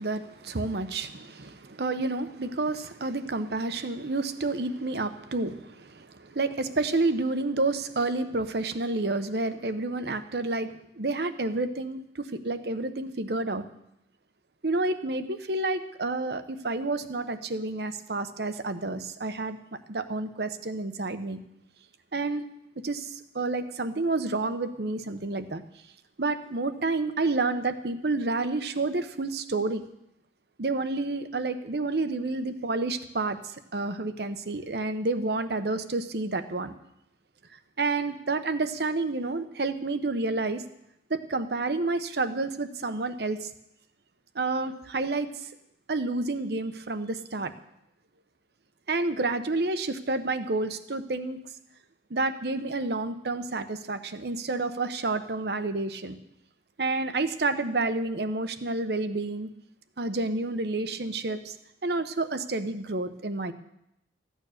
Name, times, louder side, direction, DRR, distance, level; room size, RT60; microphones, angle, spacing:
voice 1, 0.0-13.6 14.6-19.6 19.9-21.4 22.1-22.4 22.8-25.6 26.2-29.8 30.6-36.7 37.8-40.6 41.1-43.5 44.3-45.5 45.9-47.5 48.9-51.4 52.1-56.2 56.8-59.5 60.0-61.5 61.8-63.5, right 3 dB, 65° right, 10 dB, 0.9 m, -29 dB
14.5 x 9.2 x 6.5 m, 0.81 s
head